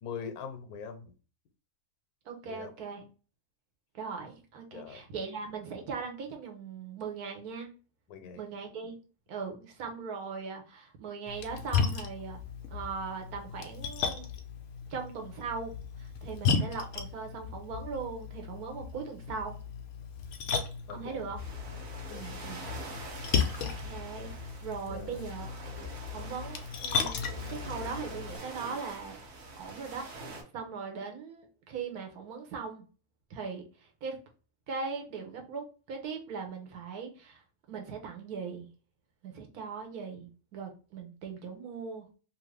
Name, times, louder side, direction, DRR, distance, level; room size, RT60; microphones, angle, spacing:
voice 1, 0.0-1.1 2.5-2.7 4.7-5.0 8.1-8.4 20.9-21.2 22.1-22.2 24.9-25.2, left 6 dB, 90° left, 1.1 m, -42 dB
voice 2, 2.2-3.1 3.9-7.7 8.4-9.0 9.3-12.4 12.7-14.2 14.9-19.6 20.9-21.4 22.1-22.6 23.2-25.8 26.1-29.2 29.6-32.9 33.3-34.2 34.7-38.7 39.2-42.1, right 5 dB, 90° right, 1.3 m, -40 dB
Splash splatter, 11.3-28.4, left 6 dB, 65° left, 0.8 m, -35 dB
sound 1, 21.4-30.4, right 2 dB, 65° right, 1.3 m, -45 dB
3.0 x 2.6 x 3.2 m
omnidirectional pair, 1.5 m